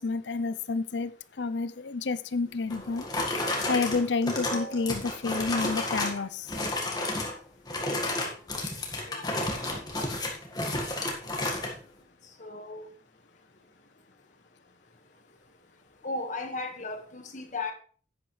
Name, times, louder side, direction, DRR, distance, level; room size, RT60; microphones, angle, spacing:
voice 1, 0.0-3.1 3.7-6.6, left 4 dB, 70° left, 14 dB, 0.6 m, -30 dB
sound 1, 2.7-6.2 6.5-7.3 7.7-11.7, left 2 dB, 20° left, 1.8 m, -31 dB
voice 2, 12.4-12.9 16.0-17.7, left 3 dB, 40° left, 5 dB, 1.7 m, -35 dB
10.5 x 9.0 x 3.3 m, 0.42 s
head